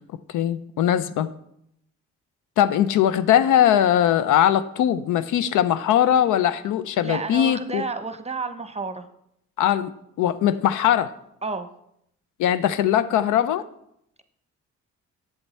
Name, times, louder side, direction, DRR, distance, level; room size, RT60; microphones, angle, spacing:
voice 1, 0.3-1.3 2.6-7.8 9.6-11.1 12.4-13.6, left 10 dB, 80° left, 14 dB, 0.5 m, -20 dB
voice 2, 7.0-9.1 11.4-11.7, right 3 dB, 20° right, 9 dB, 0.9 m, -30 dB
7.8 x 7.3 x 4.2 m, 0.75 s
supercardioid pair, 60°, 30 cm